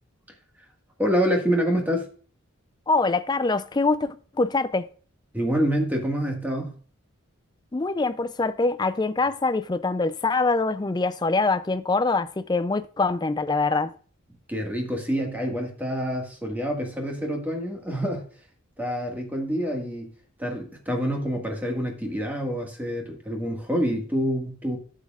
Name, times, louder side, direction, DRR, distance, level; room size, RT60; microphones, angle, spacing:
voice 1, 1.0-2.0 5.3-6.7 14.5-18.3 18.8-20.1 20.4-24.8, equal, 10° right, 1.6 m, -27 dB
voice 2, 2.9-4.9 7.7-13.9, left 3 dB, 20° left, 0.4 m, -24 dB
11.5 x 7.4 x 2.4 m
head